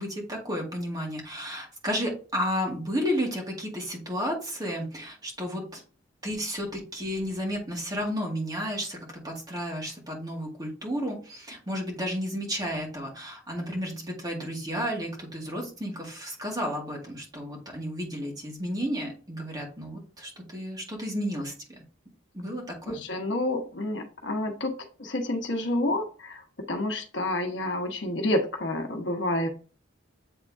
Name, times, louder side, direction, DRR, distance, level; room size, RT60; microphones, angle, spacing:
voice 1, 0.0-5.8 6.2-21.8 22.3-23.0, equal, 20° right, -1 dB, 2.1 m, -32 dB
voice 2, 22.9-24.7 25.0-29.5, left 1 dB, 70° left, 3 dB, 1.1 m, -29 dB
8.1 x 3.6 x 3.5 m, 0.38 s
head